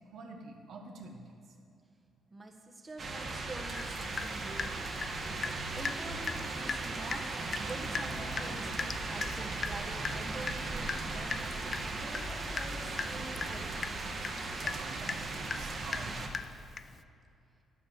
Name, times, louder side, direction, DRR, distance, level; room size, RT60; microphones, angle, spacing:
voice 1, 0.1-1.4 14.6-16.1, right 3 dB, 70° right, 1 dB, 1.5 m, -47 dB
voice 2, 2.3-4.9 5.7-7.2 7.5-11.4 12.0-14.0, right 2 dB, 25° right, 2 dB, 1.3 m, -46 dB
sound 1, 3.0-16.3, right 3 dB, 45° right, 1.7 m, -37 dB
Water tap faucet / Drip, 3.7-3.9 4.2-5.6 5.8-6.0 6.3-6.4 6.7-6.8 7.1-7.3 7.5-17.0, left 5 dB, 40° left, 0.4 m, -39 dB
9.7 x 8.7 x 7.2 m, 2.5 s
cardioid pair, 90°, 0 cm